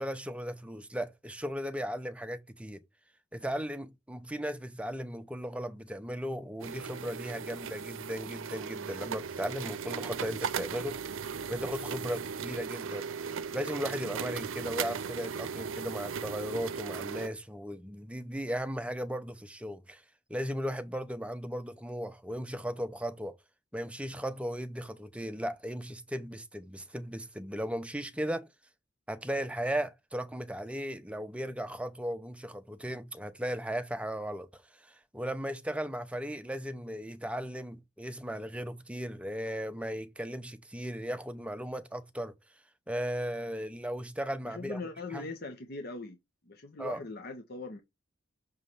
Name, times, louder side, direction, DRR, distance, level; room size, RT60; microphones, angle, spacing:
voice 1, 0.0-2.8 3.3-11.0 11.5-13.0 13.5-20.0 20.3-23.4 23.7-28.5 29.1-42.3 42.9-44.8 45.1-45.3 46.8-47.0, equal, 5° right, 0.6 m, -36 dB
sound 1, 6.6-17.3, right 6 dB, 85° right, 0.5 m, -37 dB
voice 2, 44.5-46.2 46.5-47.8, left 3 dB, 50° left, 0.9 m, -40 dB
6.4 x 3.2 x 5.5 m
head